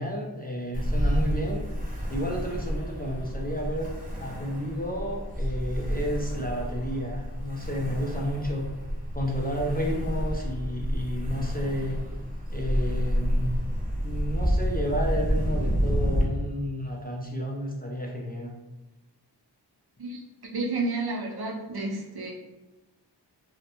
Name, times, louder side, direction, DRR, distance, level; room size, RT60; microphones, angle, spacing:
voice 1, 0.0-1.6 2.1-3.9 4.2-8.7 9.1-12.0 12.5-13.6 14.0-18.5, equal, 25° left, -2 dB, 0.3 m, -31 dB
Ocean, 0.7-16.2, equal, 20° right, 0.6 m, -29 dB
voice 2, 20.5-22.3, right 2 dB, 60° right, -1 dB, 0.6 m, -30 dB
2.4 x 2.1 x 2.8 m, 1.1 s
wide cardioid pair, 45°, 43 cm